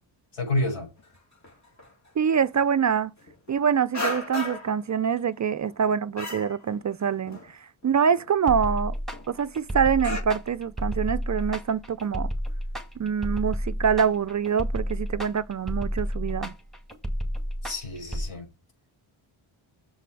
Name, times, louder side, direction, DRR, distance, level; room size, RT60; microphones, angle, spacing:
voice 1, 0.3-0.9 17.6-18.5, left 2 dB, 85° left, 5.8 m, -29 dB
sound 1, 1.0-1.2 1.4-2.1 2.5-2.6 3.2-3.6 3.9-4.8 5.2-5.8 6.2-7.0 7.3-7.5 7.8-7.9 8.1-8.8 9.1-9.3 9.5-9.6 10.0-10.2, left 2 dB, 35° left, 2.1 m, -35 dB
voice 2, 2.2-3.1 3.5-8.9 9.3-12.3 13.0-16.5, right 7 dB, 40° right, 0.4 m, -25 dB
sound 2, 8.5-18.3, equal, ahead, 2.0 m, -31 dB
7.0 x 5.8 x 4.5 m
cardioid pair, 70°, 50 cm